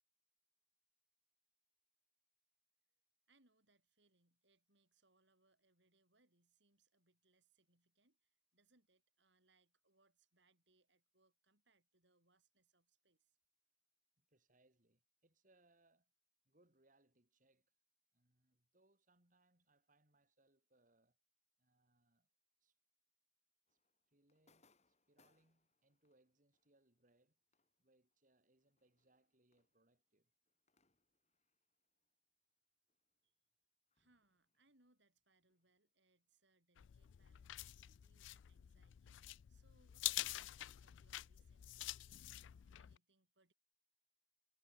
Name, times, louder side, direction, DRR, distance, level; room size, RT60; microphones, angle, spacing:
voice 1, 3.3-13.4 33.2-33.4 33.9-43.5, right 2 dB, 70° right, 7.8 m, -79 dB
voice 2, 14.2-16.1 16.4-17.7 18.1-21.2 21.6-22.3 22.6-22.8 23.7-23.8 24.1-27.4 27.8-30.3, right 2 dB, 45° right, 2.9 m, -77 dB
sound 1, 23.7-32.6 32.9-36.4, left 3 dB, 35° left, 4.3 m, -82 dB
sound 2, 36.8-43.0, left 16 dB, 80° left, 0.4 m, -47 dB
head